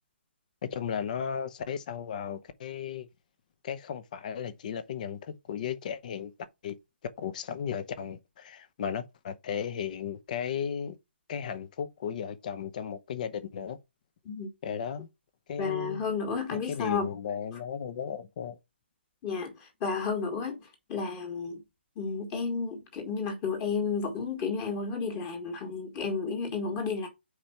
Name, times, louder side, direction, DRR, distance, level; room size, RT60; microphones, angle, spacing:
voice 1, 0.6-3.1 3.6-6.3 6.6-6.8 7.2-11.0 11.3-13.8 14.6-15.1 15.5-16.1 16.5-18.6, left 7 dB, 40° left, 0.9 m, -35 dB
voice 2, 15.6-17.1 19.2-21.6 22.0-27.1, left 5 dB, 25° left, 1.8 m, -32 dB
4.9 x 4.5 x 5.8 m
hypercardioid pair, 155°, 6 cm